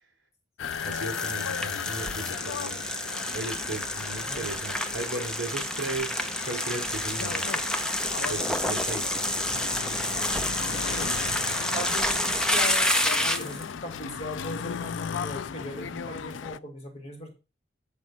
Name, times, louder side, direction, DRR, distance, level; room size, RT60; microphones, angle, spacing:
sound 1, 0.6-16.6, left 7 dB, 70° left, 0.4 m, -36 dB
sound 2, 0.6-13.6, left 1 dB, 5° left, 0.7 m, -29 dB
voice 1, 0.6-2.9 3.3-7.6 8.3-9.3, right 2 dB, 65° right, 2 dB, 3.7 m, -36 dB
voice 2, 4.2-4.5 11.0-11.1 11.7-13.0 13.2-17.3, left 1 dB, 35° left, 2 dB, 2.5 m, -38 dB
8.3 x 5.3 x 6.1 m, 0.31 s
head